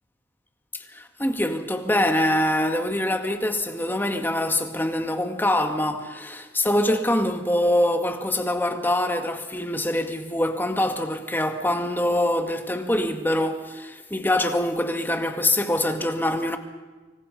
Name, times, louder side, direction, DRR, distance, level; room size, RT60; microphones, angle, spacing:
voice 1, 0.9-16.6, left 1 dB, 10° left, 2.0 m, -24 dB
25.5 x 24.5 x 5.4 m
head